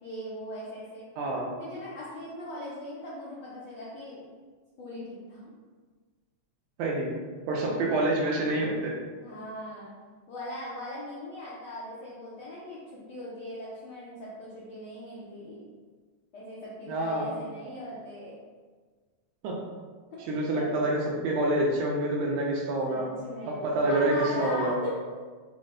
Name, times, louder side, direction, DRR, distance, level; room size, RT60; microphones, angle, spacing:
voice 1, 0.0-1.0 1.6-4.3 4.8-5.5 9.2-9.9 10.3-15.7 16.3-18.4 20.1-20.7 22.9-23.5 23.9-25.0, left 1 dB, 80° left, -7 dB, 1.1 m, -39 dB
voice 2, 1.2-1.5 6.8-7.1 7.5-8.9 16.9-17.3 19.4-19.6 20.3-23.1 23.5-24.8, right 1 dB, 80° right, -2 dB, 2.1 m, -27 dB
6.1 x 2.1 x 3.7 m, 1.5 s
omnidirectional pair, 3.5 m